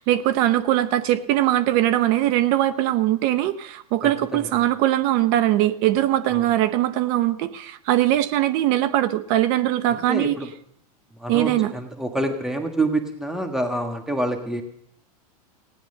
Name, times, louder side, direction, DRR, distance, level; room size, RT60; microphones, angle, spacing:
voice 1, 0.0-10.4 11.3-11.7, right 13 dB, 50° right, 14 dB, 0.8 m, -21 dB
voice 2, 4.0-4.6 6.3-6.5 9.9-10.5 11.2-14.6, right 1 dB, 5° right, 5 dB, 1.5 m, -27 dB
16.5 x 10.5 x 6.6 m, 0.73 s
supercardioid pair, 125°, 19 cm